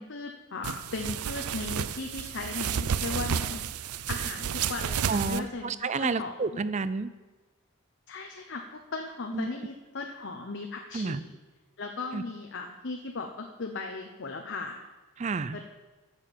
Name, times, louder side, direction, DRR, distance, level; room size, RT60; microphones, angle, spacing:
voice 1, 0.0-3.6 4.1-5.7 6.0-6.3 8.1-11.3 11.8-14.8 15.5-15.6, left 3 dB, 55° left, 3 dB, 0.8 m, -37 dB
sound 1, 0.6-5.4, right 8 dB, 85° right, 0.5 m, -31 dB
voice 2, 5.1-7.1 9.3-9.5 10.9-11.2 12.1-12.2 15.2-15.6, right 4 dB, 30° right, 15 dB, 0.4 m, -30 dB
10.0 x 7.3 x 7.2 m, 1.2 s
head